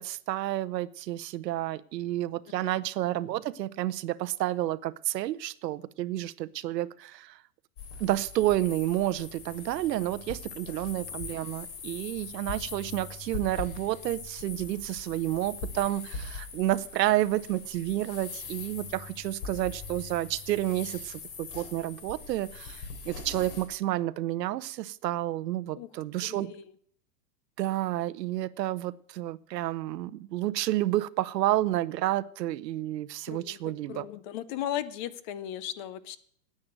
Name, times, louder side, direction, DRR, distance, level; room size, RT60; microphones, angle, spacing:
voice 1, 0.0-7.4 8.0-26.5 27.6-34.1, right 14 dB, 90° right, 0.8 m, -30 dB
sound 1, 7.8-23.7, left 5 dB, 45° left, 3.4 m, -42 dB
voice 2, 26.2-26.6 33.3-36.2, left 11 dB, 30° left, 0.5 m, -37 dB
9.9 x 8.6 x 9.0 m
supercardioid pair, 150°, 48 cm